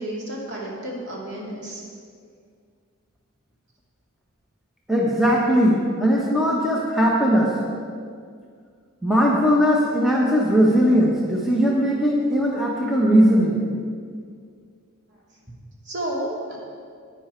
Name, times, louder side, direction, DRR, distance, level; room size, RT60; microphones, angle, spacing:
voice 1, 0.0-1.8 15.1-15.2 15.8-16.6, right 1 dB, 55° right, -4 dB, 2.6 m, -31 dB
voice 2, 4.9-7.5 9.0-13.6, equal, ahead, -3 dB, 1.0 m, -19 dB
11.0 x 9.1 x 4.5 m, 2.1 s
head